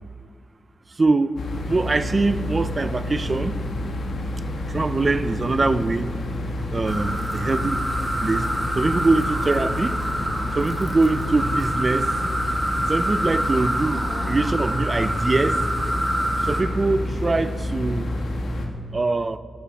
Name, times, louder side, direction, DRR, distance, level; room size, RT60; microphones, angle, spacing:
voice 1, 1.0-1.3 1.6-3.6 4.7-6.1 6.7-8.5 8.8-10.0 10.6-12.1 12.9-15.6 16.4-18.1 18.9-19.4, right 3 dB, 30° right, 0.5 m, -23 dB
sound 1, 1.4-18.7, left 1 dB, 85° left, 1.5 m, -29 dB
sound 2, 6.9-16.6, equal, 5° right, 1.7 m, -27 dB
16.5 x 13.5 x 4.2 m
wide cardioid pair, 125°, 0 cm